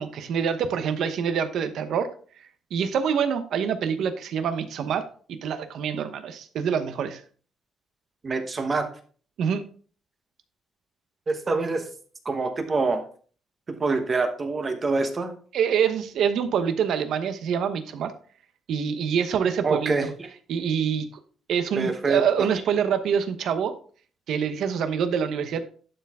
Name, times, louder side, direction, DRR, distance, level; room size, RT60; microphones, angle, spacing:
voice 1, 0.0-2.1 2.7-7.2 9.4-9.6 15.5-18.1 18.7-20.1 20.5-21.1 21.5-23.7 24.3-25.7, right 7 dB, 65° right, 10 dB, 0.9 m, -26 dB
voice 2, 8.2-8.9 11.3-11.8 12.2-13.0 13.7-15.3 19.6-20.1 21.8-22.2, right 3 dB, 25° right, 6 dB, 1.1 m, -25 dB
11.0 x 4.7 x 3.6 m, 0.43 s
cardioid pair, 165°, 0 cm